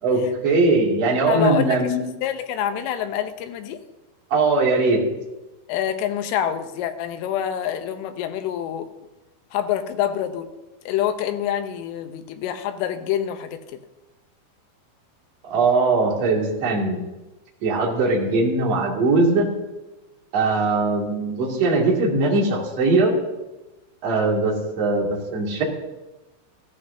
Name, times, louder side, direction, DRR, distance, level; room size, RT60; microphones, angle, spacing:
voice 1, 0.0-2.0 4.3-5.0 15.4-17.0 17.6-19.5 20.3-23.1 24.0-25.6, right 3 dB, 40° right, -3 dB, 2.7 m, -20 dB
voice 2, 1.3-2.0 2.2-3.8 5.7-8.9 9.5-10.5 10.9-13.6, left 10 dB, 80° left, 8 dB, 3.3 m, -26 dB
17.5 x 14.0 x 2.7 m, 1.1 s
omnidirectional pair, 5.7 m